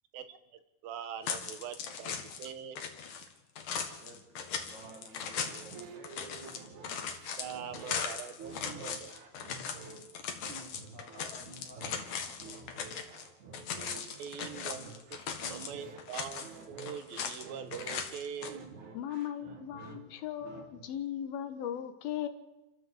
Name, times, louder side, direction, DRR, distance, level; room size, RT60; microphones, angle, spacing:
voice 1, 0.1-2.8 7.4-9.1 14.1-15.2 15.5-18.7, right 8 dB, 75° right, 2.8 m, -43 dB
sound 1, 1.2-2.5 2.8-13.3 13.5-15.7 16.0-17.4 17.7-18.5, left 7 dB, 60° left, 3.1 m, -39 dB
voice 2, 4.0-6.6 10.2-13.4, right 2 dB, 35° right, 2.7 m, -54 dB
sound 2, 4.7-20.9, right 4 dB, 55° right, 3.3 m, -50 dB
voice 3, 18.9-22.3, left 10 dB, 80° left, 3.1 m, -37 dB
29.0 x 13.5 x 7.8 m
omnidirectional pair, 4.3 m